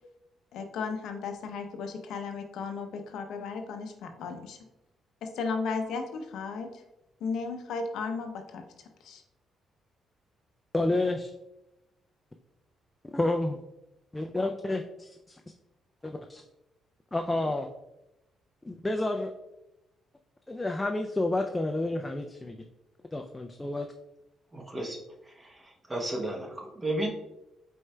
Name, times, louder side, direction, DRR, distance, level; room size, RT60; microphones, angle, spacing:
voice 1, 0.5-4.6 5.2-6.8 7.2-9.2, left 4 dB, 80° left, 5 dB, 0.5 m, -35 dB
voice 2, 10.7-11.3 13.0-13.6 14.1-15.4 16.0-16.4 17.1-17.7 18.6-19.3 20.5-22.6 23.1-23.9, left 2 dB, 15° left, 4 dB, 0.3 m, -30 dB
voice 3, 24.5-25.0 25.9-27.1, right 1 dB, 20° right, 1 dB, 0.9 m, -32 dB
4.8 x 4.3 x 2.2 m, 0.92 s
cardioid pair, 90°, 0 cm